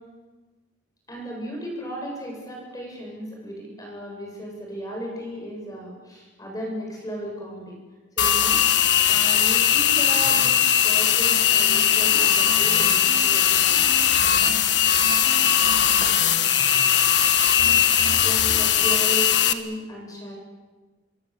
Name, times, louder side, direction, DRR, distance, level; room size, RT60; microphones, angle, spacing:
voice 1, 1.1-7.7 8.2-8.6 9.1-13.7 14.3-14.7 16.0-16.2 17.7-18.0 18.2-20.4, right 1 dB, 20° left, -1 dB, 7.9 m, -35 dB
sound 1, 8.2-19.5, left 9 dB, 65° left, 1.5 m, -19 dB
sound 2, 10.3-10.6 11.2-14.6 15.0-16.9 17.6-18.6, equal, 85° left, 5.4 m, -38 dB
25.5 x 22.5 x 8.3 m, 1.3 s
head